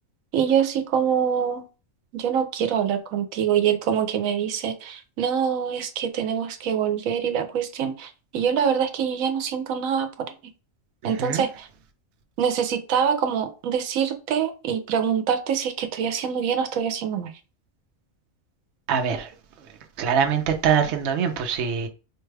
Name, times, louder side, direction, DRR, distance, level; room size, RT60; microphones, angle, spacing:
voice 1, 0.3-1.6 2.1-10.3 11.0-11.7 12.4-17.3, right 8 dB, 90° right, 1.0 m, -25 dB
voice 2, 11.0-11.5 18.9-19.3 20.0-21.9, right 7 dB, 65° right, 0.8 m, -23 dB
4.6 x 2.2 x 3.2 m
omnidirectional pair, 1.4 m